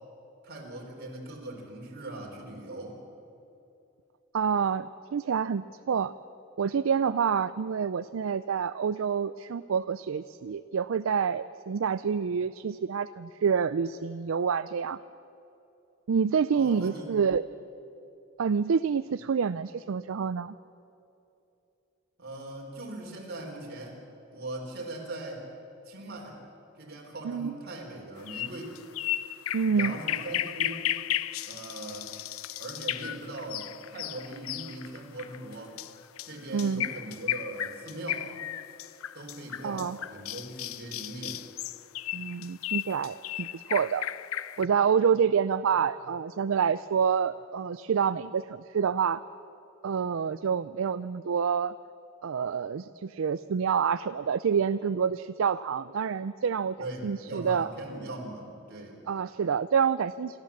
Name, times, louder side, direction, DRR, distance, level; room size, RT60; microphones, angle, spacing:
voice 1, 0.4-3.0 16.5-17.1 22.2-24.0 24.3-25.4 25.9-26.4 26.8-28.8 29.7-30.9 31.4-32.1 32.6-35.8 36.2-38.3 39.1-41.4 56.8-59.0, right 2 dB, 50° right, 0 dB, 4.1 m, -40 dB
voice 2, 4.3-6.1 6.6-15.0 16.1-17.4 18.4-20.5 27.2-27.5 29.5-30.0 36.5-36.9 39.6-40.0 42.1-44.1 44.6-49.2 49.8-51.7 52.2-56.8 57.0-57.7 59.1-60.4, right 6 dB, 70° right, 14 dB, 0.4 m, -27 dB
sound 1, 28.3-44.7, left 12 dB, 90° left, 0.5 m, -35 dB
27.0 x 13.5 x 7.3 m, 2.8 s
head